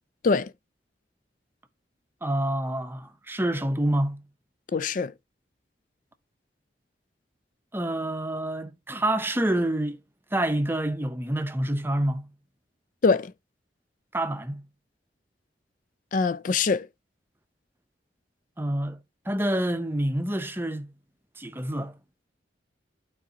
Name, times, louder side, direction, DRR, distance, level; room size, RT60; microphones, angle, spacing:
voice 1, 2.2-4.2 7.7-10.0 10.3-12.3 14.1-14.7 18.6-19.0 19.3-20.9 21.4-22.0, right 1 dB, 10° right, 0.7 m, -27 dB
voice 2, 4.7-5.1 13.0-13.3 16.1-16.9, left 4 dB, 45° left, 0.4 m, -23 dB
12.0 x 4.1 x 2.8 m
head